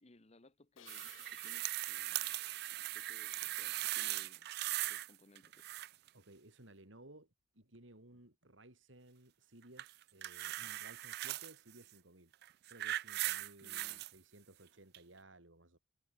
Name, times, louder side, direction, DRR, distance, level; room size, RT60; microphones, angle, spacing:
voice 1, 0.0-2.4 2.7-4.5 4.8-5.7 13.6-14.0, left 2 dB, 35° left, 1.1 m, -64 dB
Crash cymbal, 0.8-3.8, left 11 dB, 90° left, 0.8 m, -63 dB
sound 1, 0.9-5.1 5.4-6.1 9.8-11.5 12.3-14.1 14.9-15.0, right 16 dB, 55° right, 0.4 m, -39 dB
voice 2, 6.1-12.3 12.7-15.8, right 1 dB, 80° right, 4.6 m, -59 dB
head